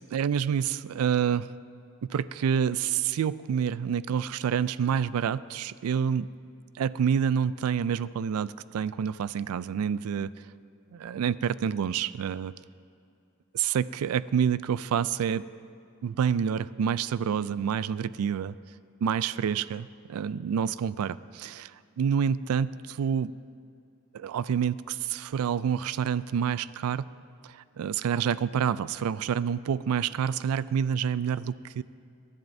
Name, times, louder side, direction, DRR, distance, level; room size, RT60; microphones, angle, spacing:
voice 1, 0.1-1.5 2.0-6.3 6.8-10.3 10.9-12.5 13.5-15.4 16.0-18.5 19.0-21.7 22.0-23.3 24.1-27.1 27.4-31.8, right 7 dB, 85° right, 17 dB, 0.3 m, -28 dB
23.0 x 11.0 x 2.7 m, 2.4 s
head